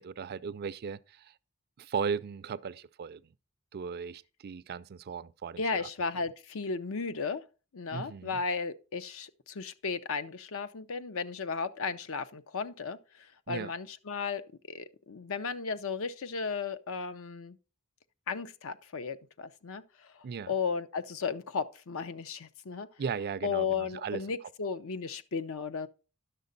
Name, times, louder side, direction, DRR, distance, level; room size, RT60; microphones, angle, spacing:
voice 1, 0.0-1.3 1.8-3.2 3.7-5.8 7.9-8.4 13.5-13.7 20.2-20.5 23.0-24.2, right 6 dB, 45° right, 0.4 m, -37 dB
voice 2, 5.6-7.4 7.7-14.4 14.7-17.6 18.3-22.9 23.4-25.9, left 5 dB, 65° left, 0.6 m, -35 dB
10.5 x 6.6 x 4.0 m
head